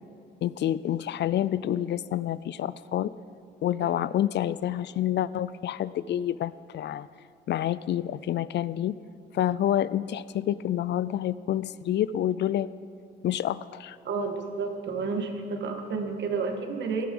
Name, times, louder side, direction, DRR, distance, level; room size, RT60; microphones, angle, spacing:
voice 1, 0.4-3.1 3.6-7.1 7.5-9.0 9.3-12.7 13.2-14.0, left 11 dB, 60° left, 17 dB, 0.4 m, -28 dB
voice 2, 14.1-17.1, right 4 dB, 65° right, 4 dB, 1.8 m, -30 dB
17.0 x 11.5 x 5.4 m, 2.3 s
cardioid pair, 90°, 20 cm